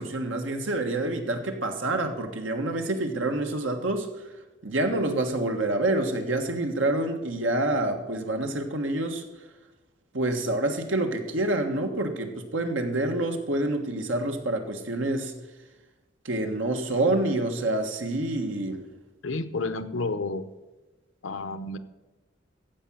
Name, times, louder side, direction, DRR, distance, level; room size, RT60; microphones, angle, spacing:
voice 1, 0.0-4.3 4.6-9.2 10.1-15.3 16.2-18.8, right 2 dB, 80° right, 5 dB, 1.5 m, -27 dB
voice 2, 19.2-20.4 21.2-21.8, left 3 dB, 85° left, 11 dB, 0.8 m, -30 dB
14.5 x 5.2 x 7.5 m, 1.1 s
head